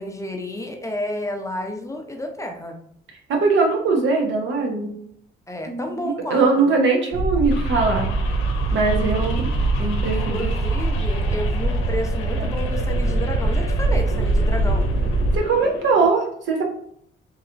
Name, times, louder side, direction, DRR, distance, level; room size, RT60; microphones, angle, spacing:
voice 1, 0.0-2.8 5.5-6.7 9.0-9.3 10.1-14.9, left 1 dB, 15° left, 3 dB, 0.5 m, -31 dB
voice 2, 3.3-4.9 5.7-8.1 8.7-9.5 9.8-10.5 12.4-12.6 15.3-16.6, right 4 dB, 70° right, 1 dB, 0.9 m, -21 dB
sound 1, 7.1-15.4, right 2 dB, 45° right, 0.4 m, -22 dB
sound 2, 7.5-16.1, left 5 dB, 85° left, 0.6 m, -35 dB
3.2 x 2.8 x 2.5 m, 0.68 s
cardioid pair, 90°, 20 cm